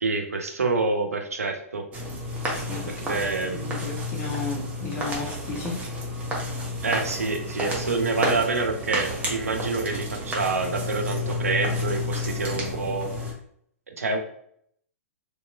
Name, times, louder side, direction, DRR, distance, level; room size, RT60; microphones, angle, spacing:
voice 1, 0.0-1.8 2.9-3.6 6.8-13.1 13.9-14.2, right 3 dB, 85° right, 4 dB, 0.6 m, -27 dB
sound 1, 1.9-13.3, left 1 dB, 20° right, 1.0 m, -31 dB
voice 2, 2.5-5.8 12.5-12.7, left 3 dB, 35° left, 0 dB, 1.0 m, -34 dB
3.0 x 2.9 x 2.4 m, 0.68 s
hypercardioid pair, 110°, 8 cm